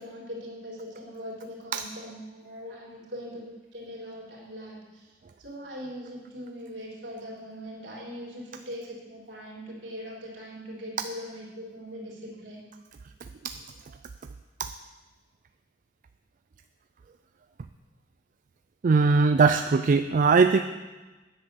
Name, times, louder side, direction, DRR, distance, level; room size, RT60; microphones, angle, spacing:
voice 1, 0.0-5.1 5.4-12.6, equal, 70° right, -4 dB, 3.7 m, -41 dB
voice 2, 18.8-20.6, right 4 dB, 45° right, 9 dB, 0.4 m, -20 dB
9.9 x 7.9 x 6.9 m, 1.2 s
head